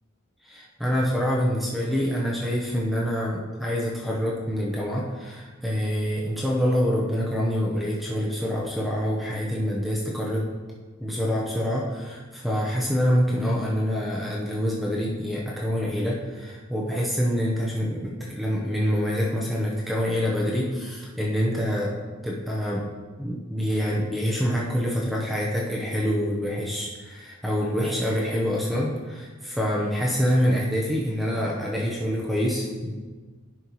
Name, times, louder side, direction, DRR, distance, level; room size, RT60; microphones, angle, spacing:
voice 1, 0.4-10.4 11.0-22.8 23.2-32.9, equal, ahead, -4 dB, 0.7 m, -26 dB
10.5 x 5.3 x 3.1 m, 1.4 s
head